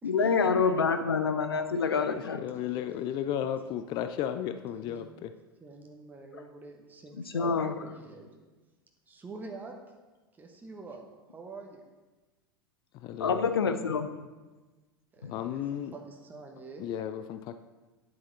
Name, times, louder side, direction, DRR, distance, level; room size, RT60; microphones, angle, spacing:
voice 1, 0.0-2.4 7.3-7.7 13.2-14.1 15.2-15.3, left 5 dB, 75° left, 9 dB, 0.8 m, -27 dB
voice 2, 2.0-5.3 12.9-13.4 15.3-16.0 16.8-17.6, left 10 dB, 35° left, 10 dB, 0.4 m, -34 dB
voice 3, 4.6-5.1 5.6-8.4 9.1-9.7 10.4-11.8 15.1-16.8, right 3 dB, 15° right, 2 dB, 1.1 m, -46 dB
9.9 x 7.6 x 3.9 m, 1.2 s
figure-of-eight pair, 85°, 13 cm